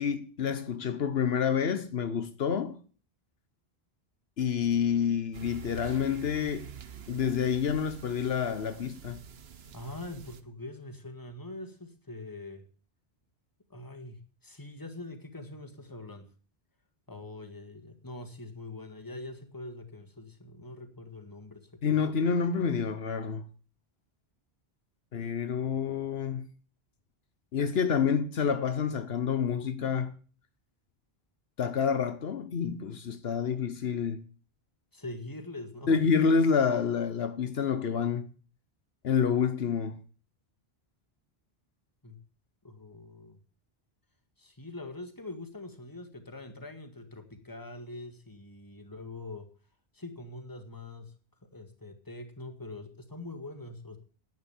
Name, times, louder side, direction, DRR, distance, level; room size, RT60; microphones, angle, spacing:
voice 1, 0.0-2.8 4.4-6.7 7.1-9.2 21.8-23.4 25.1-26.5 27.5-30.1 31.6-34.2 35.9-38.3 39.0-40.0, left 6 dB, 75° left, 1.2 m, -28 dB
sound 1, 5.3-10.4, right 7 dB, 80° right, 1.2 m, -47 dB
voice 2, 9.7-12.6 13.7-16.3 17.1-22.1 34.9-36.0 42.0-42.2 42.6-43.4 44.4-49.5 49.9-51.1 51.5-54.0, left 2 dB, 20° left, 1.8 m, -43 dB
10.5 x 8.5 x 7.1 m
omnidirectional pair, 1.0 m